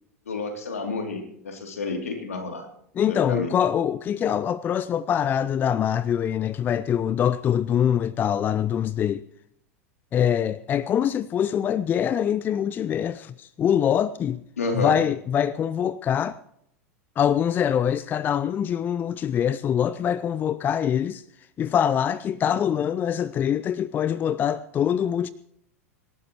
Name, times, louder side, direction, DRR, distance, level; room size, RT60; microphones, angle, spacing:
voice 1, 0.3-2.7 3.1-3.5 14.6-15.0, left 3 dB, 70° left, 2.9 m, -30 dB
voice 2, 3.0-9.2 10.1-14.4 14.7-16.4 17.2-21.2 21.6-25.3, left 9 dB, 25° left, 0.4 m, -24 dB
25.5 x 12.5 x 3.1 m
figure-of-eight pair, 90°, 8 cm